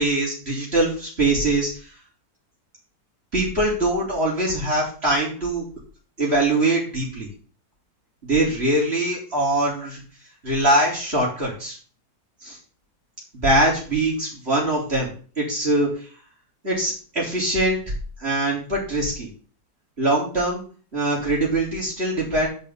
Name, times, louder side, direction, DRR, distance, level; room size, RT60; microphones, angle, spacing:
voice 1, 0.0-1.7 3.3-5.7 6.2-7.3 8.2-10.0 10.4-11.8 12.4-12.6 13.4-15.1 15.4-15.9 16.6-17.8 18.2-19.3 20.0-20.6 20.9-22.5, right 1 dB, 35° right, -5 dB, 4.3 m, -22 dB
10.5 x 5.6 x 6.9 m, 0.41 s
omnidirectional pair, 1.8 m